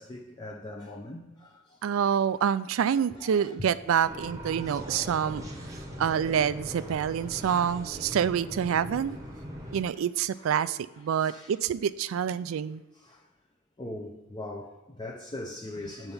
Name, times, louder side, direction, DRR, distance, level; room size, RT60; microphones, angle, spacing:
voice 1, 0.0-1.8 2.9-3.5 5.9-6.0 7.4-8.0 10.3-10.6 11.2-11.5 13.0-13.3 13.8-16.1, left 1 dB, 20° left, -1 dB, 0.6 m, -42 dB
voice 2, 1.8-5.4 6.0-9.2 9.7-12.8, right 8 dB, 90° right, 16 dB, 0.3 m, -27 dB
sound 1, 4.0-9.8, equal, 15° right, 0.9 m, -40 dB
7.0 x 4.5 x 5.4 m, 1.0 s
head